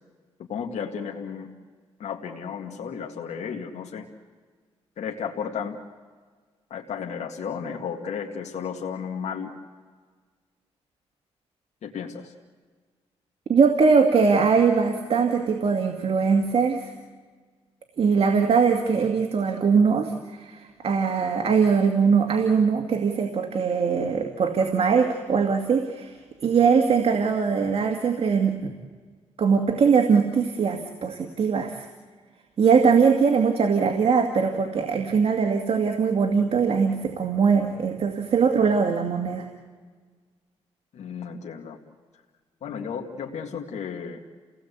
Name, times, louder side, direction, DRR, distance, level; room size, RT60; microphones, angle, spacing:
voice 1, 0.5-1.5 2.0-4.1 5.0-5.8 6.7-9.5 11.8-12.3 40.9-41.8 42.6-44.2, left 7 dB, 80° left, 1 dB, 2.0 m, -33 dB
voice 2, 13.5-16.9 18.0-28.7 29.4-31.9 32.6-39.5, right 5 dB, 60° right, 4 dB, 2.1 m, -21 dB
29.5 x 18.0 x 8.3 m, 1.5 s
cardioid pair, 80°, 11 cm